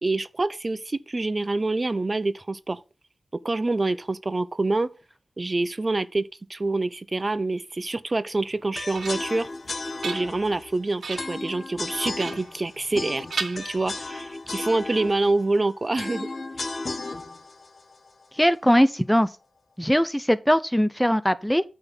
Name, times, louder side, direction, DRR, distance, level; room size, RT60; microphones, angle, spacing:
voice 1, 0.0-2.8 3.4-4.9 5.4-9.5 10.0-16.3 16.6-16.7, right 2 dB, 40° right, 0.7 m, -26 dB
sound 1, 8.4-9.4 9.8-10.6 11.0-11.4 12.2-13.0 13.3-14.3, right 4 dB, 85° right, 1.3 m, -36 dB
sound 2, 8.7-18.8, left 3 dB, 55° left, 1.2 m, -35 dB
voice 2, 18.4-19.3 19.8-21.6, equal, 5° left, 0.7 m, -20 dB
8.9 x 4.0 x 7.2 m
cardioid pair, 55°, 0 cm